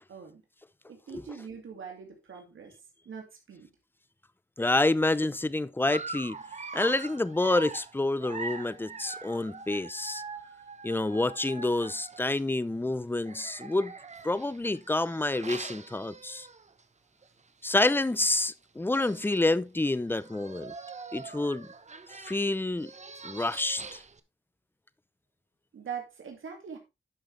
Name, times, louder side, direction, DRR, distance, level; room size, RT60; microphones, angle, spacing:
voice 1, 0.1-0.4 0.9-2.8 3.1-3.7 25.7-26.8, right 7 dB, 80° right, 2.4 m, -42 dB
voice 2, 4.6-6.4 6.7-10.2 10.8-13.9 14.2-16.5 17.6-20.7 21.1-21.7 22.2-22.9 23.2-24.0, left 2 dB, 10° left, 0.6 m, -28 dB
Dog, 5.8-12.4 13.2-16.8 17.2-17.4 17.7-17.8 18.6-18.7 18.9-19.5 20.1-24.2, right 4 dB, 35° right, 1.0 m, -43 dB
11.0 x 6.5 x 3.3 m
cardioid pair, 80°, 20 cm